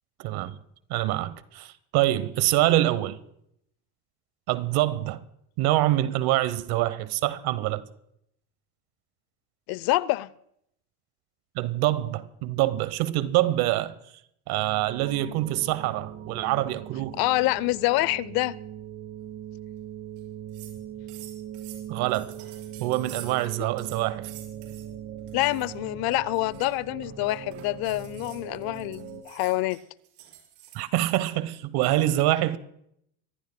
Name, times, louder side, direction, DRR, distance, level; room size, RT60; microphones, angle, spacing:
voice 1, 0.2-0.6 0.9-3.2 4.5-5.2 5.6-7.8 11.5-13.9 14.5-17.2 21.9-22.3 22.8-24.3 30.7-32.6, right 15 dB, 55° right, 1.0 m, -25 dB
voice 2, 9.7-10.3 17.2-18.6 25.3-29.8, left 19 dB, 55° left, 0.6 m, -26 dB
sound 1, 14.5-29.2, right 10 dB, 30° right, 1.4 m, -40 dB
sound 2, 20.2-20.3 20.5-20.8 21.1-23.5 23.8-24.9 25.3-25.7 26.1-30.8, right 12 dB, 75° right, 5.7 m, -47 dB
25.0 x 15.5 x 2.2 m
supercardioid pair, 115°, 44 cm